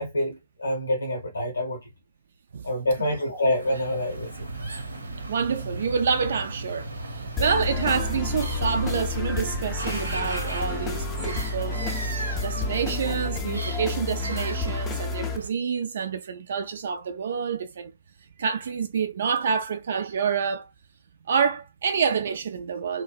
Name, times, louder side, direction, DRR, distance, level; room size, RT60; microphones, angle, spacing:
voice 1, 0.0-1.8 2.6-4.5, left 1 dB, 75° left, 0.7 m, -27 dB
sound 1, 3.4-15.5, right 2 dB, 75° right, 0.7 m, -35 dB
voice 2, 5.3-11.8 12.4-17.9 18.4-20.7 21.3-23.0, right 6 dB, 60° right, 0.3 m, -27 dB
sound 2, 7.4-15.4, left 3 dB, 15° left, 0.5 m, -30 dB
2.6 x 2.0 x 2.3 m
figure-of-eight pair, 125°, 0 cm